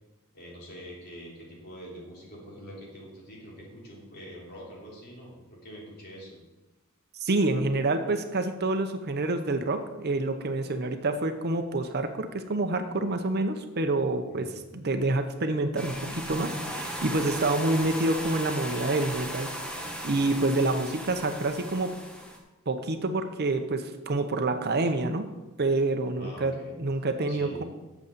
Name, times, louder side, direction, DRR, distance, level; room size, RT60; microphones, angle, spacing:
voice 1, 0.3-6.4 14.3-14.7 26.2-26.8 27.3-27.6, equal, 50° left, -4 dB, 3.6 m, -45 dB
voice 2, 7.2-19.5 20.0-21.9 22.7-25.3 25.6-27.6, right 2 dB, 50° right, 8 dB, 0.8 m, -27 dB
sound 1, 15.7-22.4, equal, 5° left, 1.3 m, -36 dB
8.1 x 7.1 x 6.7 m, 1.1 s
head